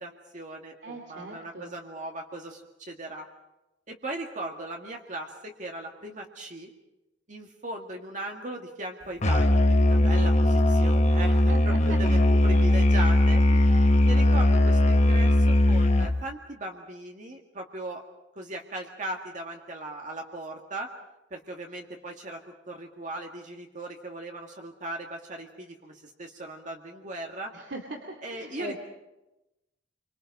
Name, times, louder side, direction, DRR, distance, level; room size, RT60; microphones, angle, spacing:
voice 1, 0.0-3.3 3.9-6.7 7.3-13.4 14.0-18.0 18.3-20.9 21.3-22.4 22.7-27.5 28.2-28.7, right 2 dB, 45° right, 1 dB, 1.9 m, -38 dB
voice 2, 0.8-1.7 11.5-11.6 11.9-12.0 13.5-13.9 27.5-28.7, right 1 dB, 75° right, 1 dB, 2.6 m, -40 dB
Musical instrument, 9.2-16.2, left 1 dB, 40° left, 1.0 m, -20 dB
27.0 x 24.5 x 5.4 m, 0.96 s
head